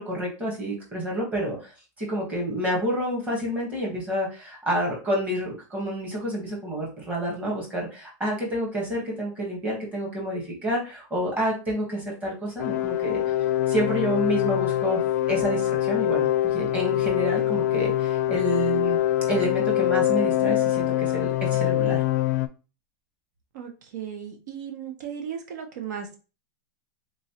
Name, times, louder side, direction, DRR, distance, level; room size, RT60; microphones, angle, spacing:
voice 1, 0.0-13.2 13.7-15.0 15.3-16.3 16.5-19.0 19.3-22.0, equal, 15° right, -2 dB, 1.2 m, -29 dB
sound 1, 12.6-22.5, left 13 dB, 65° left, 0.4 m, -24 dB
voice 2, 23.5-26.2, right 8 dB, 70° right, 4 dB, 0.8 m, -36 dB
3.6 x 3.1 x 2.8 m, 0.32 s
supercardioid pair, 170°, 10 cm